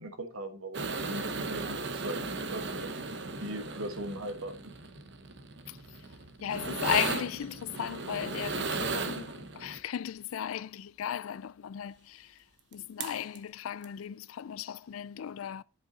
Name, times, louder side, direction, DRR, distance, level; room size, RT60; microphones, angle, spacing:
voice 1, 0.0-2.7 3.4-4.7, right 1 dB, 85° right, 1.5 m, -39 dB
sound 1, 0.7-9.8 12.7-12.8 13.0-13.4 13.8-13.9, right 3 dB, 55° right, 0.9 m, -36 dB
voice 2, 6.4-12.4 12.7-15.6, left 9 dB, 80° left, 0.4 m, -36 dB
10.5 x 5.5 x 4.0 m
head